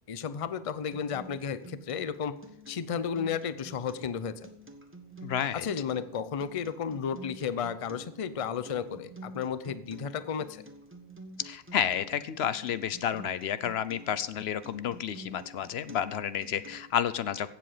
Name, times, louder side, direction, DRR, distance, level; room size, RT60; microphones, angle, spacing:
voice 1, 0.1-2.3 2.7-4.5 5.5-10.6, left 7 dB, 40° left, 13 dB, 0.6 m, -33 dB
Acoustic guitar, 0.9-16.9, right 2 dB, 10° right, 1.2 m, -49 dB
voice 2, 5.2-5.7 11.4-17.5, left 9 dB, 75° left, 15 dB, 0.9 m, -31 dB
15.0 x 7.7 x 5.0 m, 0.81 s
omnidirectional pair, 1.1 m